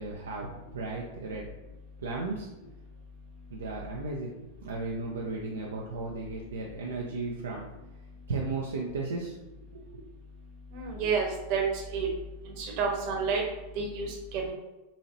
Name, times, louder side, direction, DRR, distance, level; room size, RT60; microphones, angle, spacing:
voice 1, 0.0-1.5 2.0-2.5 3.5-4.3 4.6-7.7 8.3-9.4 9.7-10.0, right 3 dB, 65° right, -2 dB, 0.5 m, -35 dB
voice 2, 10.7-11.6 11.9-12.1 12.6-13.4 13.7-14.5, right 5 dB, 45° right, 1 dB, 1.0 m, -30 dB
4.1 x 2.8 x 2.6 m, 1.0 s
figure-of-eight pair, 90°, 0 cm